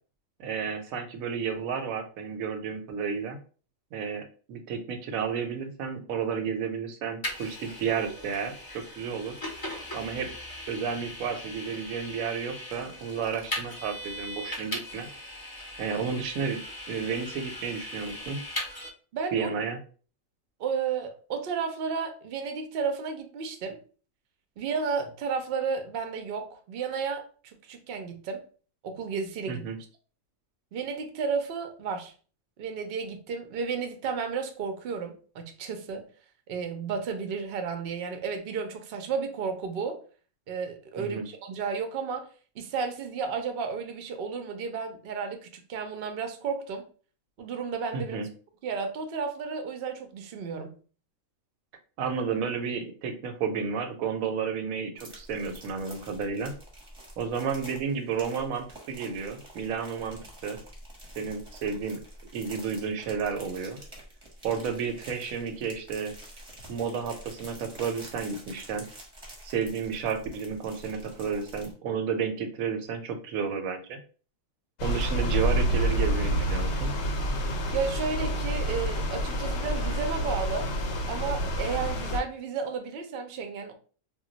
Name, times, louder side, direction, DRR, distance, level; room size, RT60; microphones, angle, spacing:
voice 1, 0.4-3.4 3.9-9.3 9.9-10.3 10.7-15.1 15.8-18.4 19.3-19.8 29.5-29.8 41.0-41.3 47.9-48.3 52.0-56.5 57.2-60.6 61.2-62.0 62.3-63.8 64.4-66.1 66.7-68.9 69.4-74.0 74.8-76.9, right 6 dB, 90° right, 6 dB, 1.0 m, -32 dB
Vehicle, 7.2-18.9, left 1 dB, 30° left, 0.4 m, -39 dB
voice 2, 19.1-19.5 20.6-23.8 24.6-28.4 28.8-29.7 30.7-32.1 32.6-36.0 36.5-40.0 40.5-42.3 42.6-46.8 47.4-48.2 48.6-50.8 77.7-80.7 81.1-83.7, right 5 dB, 60° right, 5 dB, 0.6 m, -32 dB
sound 1, 55.0-71.7, right 1 dB, 25° right, 0.8 m, -48 dB
sound 2, 74.8-82.2, equal, 65° left, 0.8 m, -28 dB
2.3 x 2.1 x 3.8 m, 0.39 s
omnidirectional pair, 1.4 m